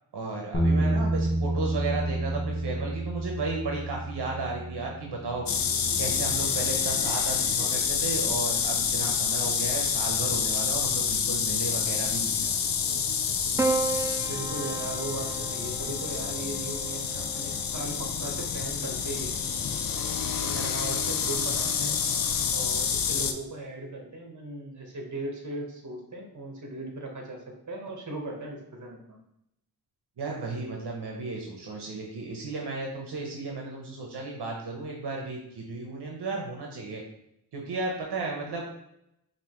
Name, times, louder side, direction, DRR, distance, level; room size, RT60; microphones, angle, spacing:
voice 1, 0.1-5.4 6.0-12.5 20.5-20.6 30.2-37.0 37.5-38.6, right 3 dB, 80° right, 0 dB, 0.8 m, -34 dB
sound 1, 0.5-6.8, right 1 dB, 30° left, 0.9 m, -30 dB
sound 2, 5.5-23.3, left 7 dB, 60° left, 0.5 m, -28 dB
Piano, 13.6-18.0 19.2-19.9, right 3 dB, 10° right, 0.3 m, -33 dB
voice 2, 14.3-19.4 20.3-21.9 22.5-29.2, right 2 dB, 45° right, 1 dB, 1.2 m, -38 dB
5.3 x 2.7 x 3.0 m, 0.81 s
cardioid pair, 55°, 40 cm